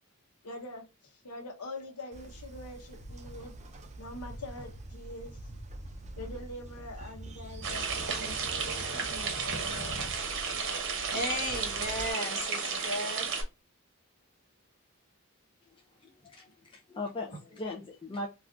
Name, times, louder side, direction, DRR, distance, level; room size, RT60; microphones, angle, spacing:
voice 1, 0.4-3.5 4.0-5.4 6.2-10.0, left 1 dB, 90° left, 0.8 m, -44 dB
Train, 2.1-12.1, right 1 dB, 30° right, 0.4 m, -44 dB
sound 1, 7.6-13.4, right 5 dB, 60° right, 0.9 m, -33 dB
voice 2, 10.8-13.3, left 1 dB, 40° left, 1.5 m, -35 dB
voice 3, 15.7-18.3, left 2 dB, 25° left, 0.4 m, -40 dB
3.5 x 2.4 x 2.3 m
head